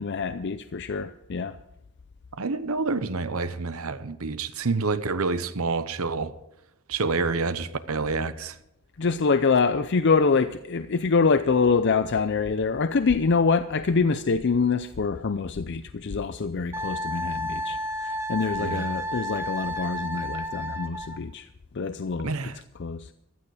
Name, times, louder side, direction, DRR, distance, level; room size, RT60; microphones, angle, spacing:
voice 1, 0.0-1.6 9.0-21.5 21.7-22.3 22.8-23.1, left 4 dB, 55° left, 0.5 m, -25 dB
voice 2, 2.3-6.3 6.9-8.6 18.6-18.9 22.2-22.6, right 4 dB, 85° right, 0.9 m, -28 dB
Wind instrument woodwind instrument, 16.7-21.2, equal, 10° right, 1.1 m, -31 dB
15.5 x 12.0 x 4.9 m
head